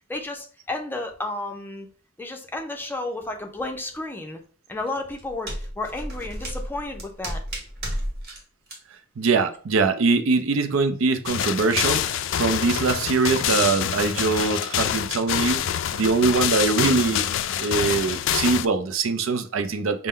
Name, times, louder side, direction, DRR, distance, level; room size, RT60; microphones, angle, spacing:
voice 1, 0.1-1.9 2.2-4.4 4.7-7.4, left 2 dB, 10° left, 0.5 m, -32 dB
sound 1, 4.9-8.4 8.7-8.8, equal, 50° right, 1.4 m, -32 dB
voice 2, 9.2-17.3 17.6-20.1, right 4 dB, 80° right, 0.5 m, -23 dB
sound 2, 11.3-18.7, left 10 dB, 65° left, 0.3 m, -26 dB
5.5 x 2.1 x 3.6 m
head